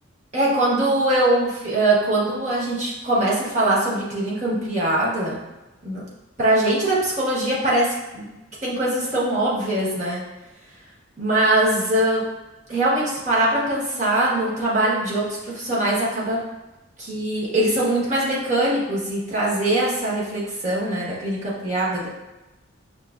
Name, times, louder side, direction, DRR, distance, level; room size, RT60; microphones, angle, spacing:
voice 1, 0.3-5.4 5.8-6.0 6.4-8.3 8.6-10.2 11.2-12.2 12.7-16.4 17.0-22.1, right 1 dB, 35° right, -6 dB, 1.2 m, -22 dB
5.7 x 3.0 x 2.4 m, 1.0 s
head